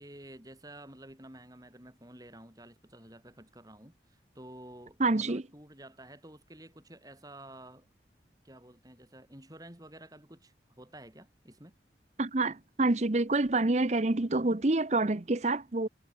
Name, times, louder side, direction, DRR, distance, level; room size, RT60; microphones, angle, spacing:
voice 1, 0.0-7.9 8.4-11.8, right 1 dB, 20° right, 6.5 m, -51 dB
voice 2, 5.0-5.4 12.2-15.9, right 2 dB, 40° right, 0.8 m, -27 dB
head